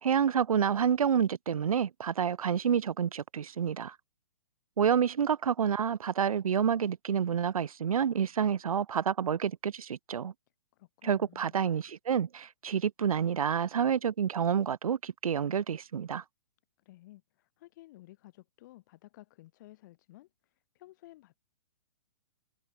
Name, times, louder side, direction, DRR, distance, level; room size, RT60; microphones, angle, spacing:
voice 1, 0.0-3.9 4.8-10.3 11.0-16.2, right 8 dB, 90° right, 1.3 m, -28 dB
voice 2, 10.7-11.6 16.8-21.4, left 17 dB, 35° left, 6.5 m, -55 dB
hypercardioid pair, 170°, 18 cm